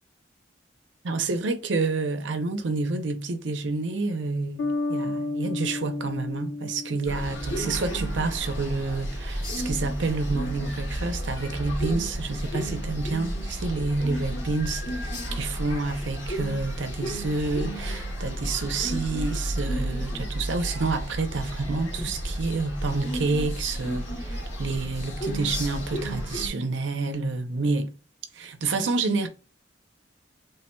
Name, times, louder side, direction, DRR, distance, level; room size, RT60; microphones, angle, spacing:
voice 1, 1.0-27.9 28.3-29.3, right 3 dB, 85° right, 0.6 m, -29 dB
Bass guitar, 4.6-8.1, left 3 dB, 65° left, 0.6 m, -32 dB
sound 1, 7.1-26.5, equal, 85° left, 1.3 m, -32 dB
3.3 x 2.3 x 4.3 m
head